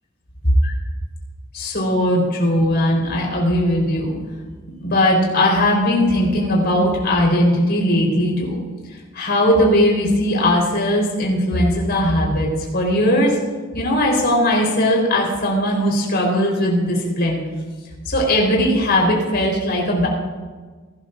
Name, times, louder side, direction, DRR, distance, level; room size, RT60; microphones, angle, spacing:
voice 1, 1.5-4.1 4.8-8.6 9.1-13.4 13.7-17.4 18.0-20.1, left 1 dB, 50° left, -2 dB, 4.6 m, -18 dB
21.5 x 13.0 x 2.7 m, 1.4 s
head